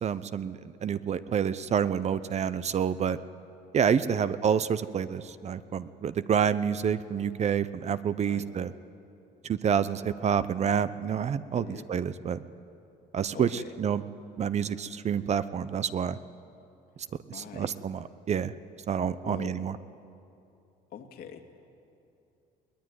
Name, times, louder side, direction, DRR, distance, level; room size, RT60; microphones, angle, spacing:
voice 1, 0.0-3.2 3.7-8.7 9.4-12.4 13.1-14.0 14.4-16.2 17.3-18.5 18.9-19.8, right 8 dB, 40° right, 14 dB, 0.7 m, -28 dB
voice 2, 11.6-11.9 13.3-13.7 17.3-17.7 19.2-19.5 20.9-21.4, left 8 dB, 65° left, 4 dB, 2.3 m, -43 dB
22.5 x 19.0 x 9.5 m, 2.7 s
cardioid pair, 110°, 17 cm